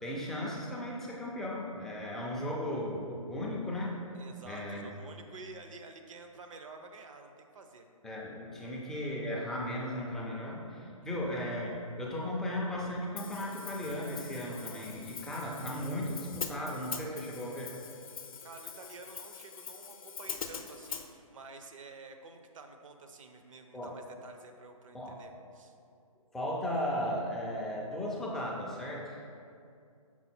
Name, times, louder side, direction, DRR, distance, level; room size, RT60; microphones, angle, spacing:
voice 1, 0.0-4.0 4.4-4.9 8.0-17.7 23.7-23.9 24.9-25.2 26.3-29.2, left 1 dB, ahead, -5 dB, 0.3 m, -36 dB
voice 2, 4.1-7.9 8.6-8.7 18.4-25.7, right 3 dB, 60° right, 6 dB, 0.6 m, -50 dB
Hi-hat, 13.2-21.1, left 7 dB, 70° left, 0.6 m, -43 dB
6.2 x 3.8 x 4.2 m, 2.4 s
hypercardioid pair, 145°, 18 cm